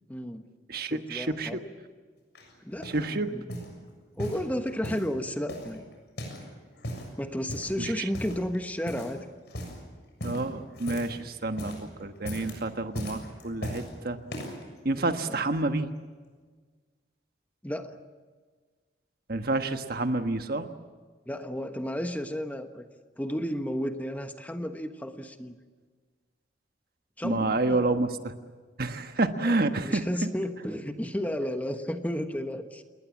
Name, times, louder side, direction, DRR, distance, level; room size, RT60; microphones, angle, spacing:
voice 1, 0.1-0.4 0.8-1.6 2.6-3.5 4.2-5.8 7.2-9.3 15.3-15.4 17.6-18.0 21.3-22.9 23.2-25.6 27.2-28.0 29.4-32.8, equal, 10° left, 7 dB, 1.2 m, -33 dB
voice 2, 0.7-1.6 2.8-3.3 10.2-11.7 12.0-14.2 14.8-15.9 19.3-20.7 27.2-28.3 28.8-30.1, right 2 dB, 55° right, 7 dB, 1.4 m, -28 dB
sound 1, 2.3-3.1 3.5-3.8 4.2-5.1 5.5-6.5 6.7-7.1 7.5-7.8 8.1-8.6 8.9-9.2 9.5-9.8 10.2-11.2 11.5-11.9 12.2-12.6 12.9-13.9 14.3-14.6 15.3-15.4, equal, 65° left, 7.2 m, -37 dB
28.5 x 21.0 x 7.3 m, 1.5 s
head